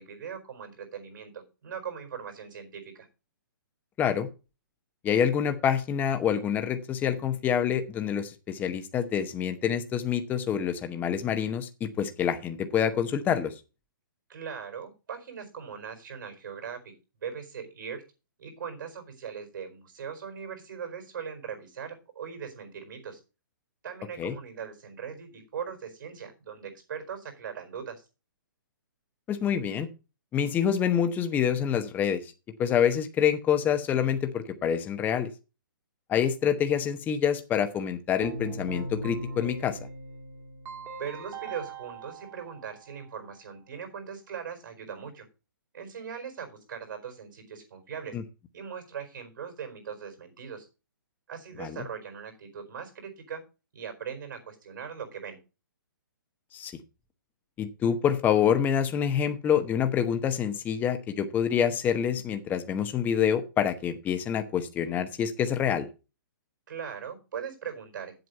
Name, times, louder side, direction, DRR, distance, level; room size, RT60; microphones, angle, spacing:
voice 1, 0.0-3.1 14.3-16.8 17.2-18.0 18.4-23.2 23.8-28.0 41.0-45.3 45.7-48.2 48.5-50.7 51.3-53.4 53.7-55.4 66.7-68.3, right 7 dB, 65° right, 5 dB, 4.6 m, -40 dB
voice 2, 4.0-4.3 5.0-13.5 24.2-24.4 29.3-29.9 30.3-32.3 32.6-35.3 36.1-39.8 48.1-48.2 51.6-51.8 56.5-56.7 57.6-65.9, left 8 dB, 15° left, 8 dB, 0.9 m, -27 dB
Keyboard (musical), 38.2-43.2, right 2 dB, 20° right, 1.7 m, -39 dB
7.9 x 7.9 x 5.4 m, 0.30 s
hypercardioid pair, 150°, 11 cm